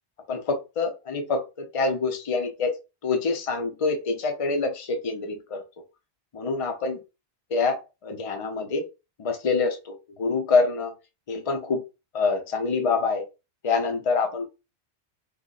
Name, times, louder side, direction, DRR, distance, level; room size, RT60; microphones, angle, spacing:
voice 1, 0.3-2.7 3.0-5.6 6.3-7.0 7.5-8.8 9.2-10.9 11.3-11.8 12.1-13.2 13.6-14.5, left 4 dB, 35° left, 4 dB, 0.6 m, -26 dB
3.0 x 2.1 x 3.8 m, 0.28 s
omnidirectional pair, 1.1 m